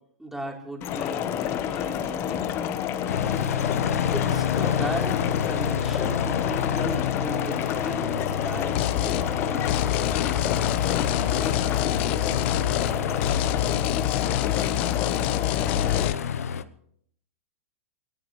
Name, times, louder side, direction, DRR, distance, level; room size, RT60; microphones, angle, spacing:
voice 1, 0.2-2.5 4.1-5.2 5.5-9.7, right 1 dB, 5° right, 0 dB, 3.8 m, -36 dB
sound 1, 0.8-16.1, left 9 dB, 35° left, 1.2 m, -29 dB
Aircraft, 3.1-16.6, left 8 dB, 85° left, 0.9 m, -29 dB
sound 2, 8.8-9.3 9.7-13.0 13.2-16.1, left 14 dB, 55° left, 0.8 m, -27 dB
22.0 x 18.0 x 3.2 m, 0.66 s
hypercardioid pair, 135°, 8 cm